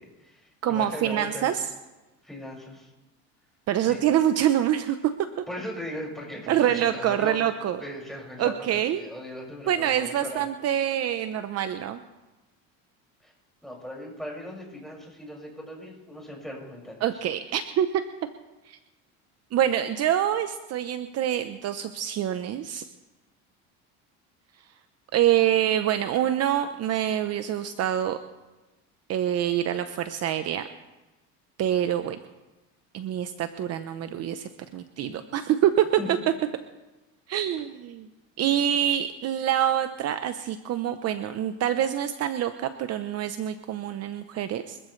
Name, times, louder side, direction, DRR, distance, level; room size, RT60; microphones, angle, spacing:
voice 1, 0.0-1.5 2.2-2.9 3.8-4.0 5.5-7.5 7.8-10.5 13.2-13.3 13.6-17.0 35.0-35.2 36.0-36.1 38.5-38.6, equal, ahead, -2 dB, 5.9 m, -38 dB
voice 2, 0.6-1.6 3.7-5.0 6.5-7.8 8.4-9.0 9.7-12.0 17.0-17.9 18.7-18.8 19.5-22.9 25.1-28.2 29.1-30.7 31.6-32.2 32.9-35.9 37.3-38.1 38.4-44.8, right 11 dB, 45° right, 9 dB, 0.9 m, -26 dB
25.0 x 14.0 x 3.3 m, 1.1 s
supercardioid pair, 115°, 34 cm